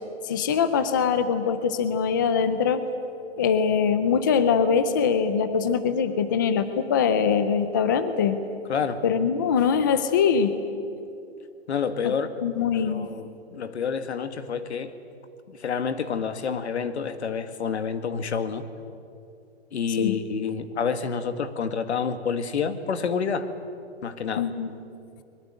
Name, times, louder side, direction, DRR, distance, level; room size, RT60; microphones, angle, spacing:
voice 1, 0.2-2.8 3.4-8.4 9.0-10.5 12.0-12.1 12.4-13.1 20.0-20.1 24.4-24.7, left 6 dB, 20° left, 11 dB, 0.5 m, -23 dB
voice 2, 8.7-9.0 11.7-12.3 12.7-14.9 15.5-18.6 19.7-23.5 24.0-24.5, left 6 dB, 80° left, 10 dB, 2.1 m, -28 dB
22.5 x 22.0 x 9.0 m, 2.6 s
hypercardioid pair, 170°, 33 cm